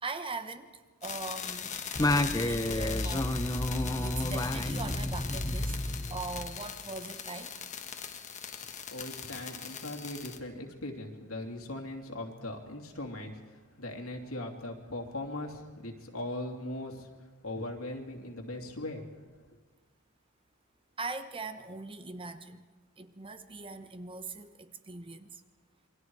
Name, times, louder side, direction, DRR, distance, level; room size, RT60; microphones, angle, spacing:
voice 1, 0.0-0.7 1.0-1.8 2.3-5.8 6.1-7.6 21.0-22.6 23.0-25.4, right 3 dB, 25° right, 9 dB, 1.0 m, -41 dB
sound 1, 1.0-10.4, left 7 dB, 35° left, 1.4 m, -41 dB
Singing, 1.9-6.7, left 1 dB, 20° left, 0.8 m, -30 dB
voice 2, 8.9-17.1 17.4-19.1, left 1 dB, 85° left, 2 dB, 2.9 m, -39 dB
27.5 x 23.0 x 4.8 m, 1.4 s
head